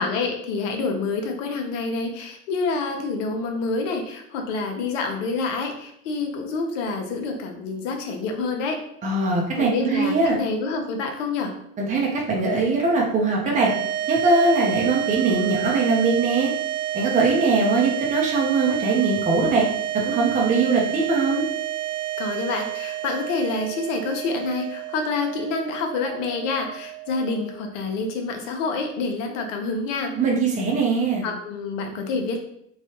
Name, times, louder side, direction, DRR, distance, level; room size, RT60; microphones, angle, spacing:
voice 1, 0.0-8.8 9.5-11.5 22.2-30.1 31.2-32.4, left 4 dB, 65° left, 4 dB, 0.8 m, -27 dB
voice 2, 9.0-10.4 11.8-13.7 14.1-16.5 16.9-19.7 19.9-21.5 30.2-31.3, right 3 dB, 20° right, -2 dB, 0.6 m, -21 dB
sound 1, 13.5-27.9, right 12 dB, 85° right, 0.7 m, -30 dB
3.1 x 2.3 x 2.9 m, 0.73 s
hypercardioid pair, 90°, 41 cm